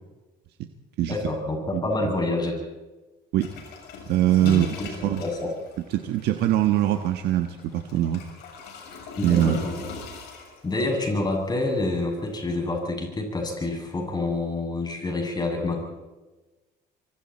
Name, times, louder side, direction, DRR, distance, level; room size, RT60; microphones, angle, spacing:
voice 1, 1.1-2.6 4.4-5.5 9.2-9.9 10.6-15.8, left 2 dB, 25° left, 1 dB, 7.8 m, -27 dB
voice 2, 1.7-2.1 3.3-3.5 4.1-5.2 5.9-8.2 9.2-9.6, right 12 dB, 80° right, 6 dB, 1.3 m, -23 dB
sound 1, 3.4-12.7, left 5 dB, 80° left, 6.7 m, -43 dB
25.0 x 25.0 x 4.3 m, 1.2 s
cardioid pair, 110°, 17 cm